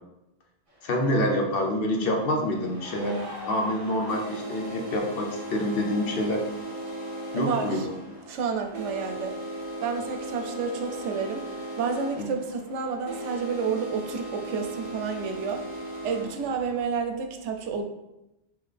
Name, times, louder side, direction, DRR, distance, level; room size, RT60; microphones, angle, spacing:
sound 1, 0.7-0.8 1.8-16.8, right 1 dB, 35° right, 0.8 m, -37 dB
voice 1, 0.8-6.5 7.3-7.9 12.2-12.3, left 1 dB, 60° left, 2 dB, 0.8 m, -27 dB
voice 2, 7.3-7.9 8.3-9.4 9.8-17.8, right 5 dB, 85° right, 5 dB, 0.9 m, -30 dB
3.7 x 3.0 x 3.3 m, 0.92 s
omnidirectional pair, 1.2 m